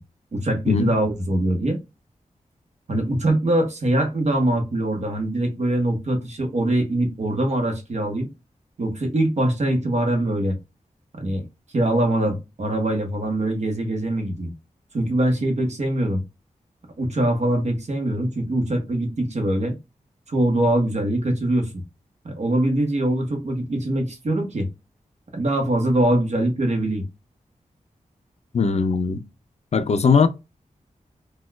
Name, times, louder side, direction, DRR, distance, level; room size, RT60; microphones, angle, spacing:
voice 1, 0.3-1.8 2.9-8.3 8.8-10.6 11.2-11.5 11.7-14.5 14.9-16.2 17.0-19.8 20.3-21.7 22.2-24.7 25.3-27.0, right 1 dB, 55° right, 1.0 m, -23 dB
voice 2, 28.5-29.2 29.7-30.3, left 5 dB, 50° left, 0.4 m, -19 dB
4.1 x 2.2 x 2.2 m
wide cardioid pair, 130°, 14 cm